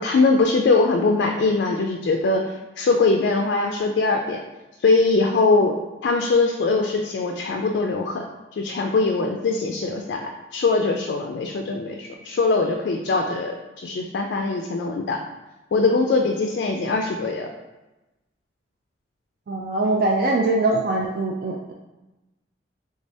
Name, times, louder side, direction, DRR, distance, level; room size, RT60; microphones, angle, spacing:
voice 1, 0.0-4.4 4.8-5.7 6.0-8.2 8.6-13.5 13.8-15.2 15.7-17.5, left 3 dB, 70° left, 2 dB, 0.3 m, -21 dB
voice 2, 19.5-21.7, right 2 dB, 55° right, -1 dB, 0.3 m, -22 dB
3.4 x 3.3 x 2.6 m, 1.1 s
head